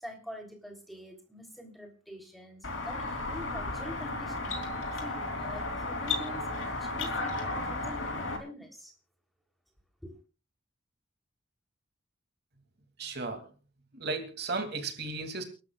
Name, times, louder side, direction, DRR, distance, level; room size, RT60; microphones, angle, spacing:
voice 1, 0.0-8.9 10.0-10.2, equal, ahead, 3 dB, 3.5 m, -46 dB
sound 1, 2.6-8.4, left 2 dB, 65° left, 3.4 m, -34 dB
voice 2, 13.0-13.5 13.9-15.4, right 3 dB, 55° right, 6 dB, 2.8 m, -35 dB
29.5 x 12.5 x 2.4 m, 0.34 s
head